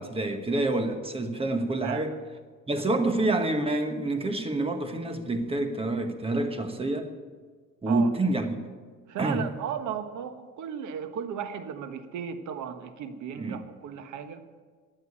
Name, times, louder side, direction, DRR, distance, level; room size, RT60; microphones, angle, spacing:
voice 1, 0.0-2.1 2.7-7.1 7.8-8.5 9.2-9.4 13.4-13.6, right 2 dB, 20° right, 7 dB, 1.3 m, -27 dB
voice 2, 9.1-14.4, right 8 dB, 80° right, 10 dB, 1.2 m, -35 dB
15.0 x 9.2 x 8.6 m, 1.5 s
cardioid pair, 145°, 29 cm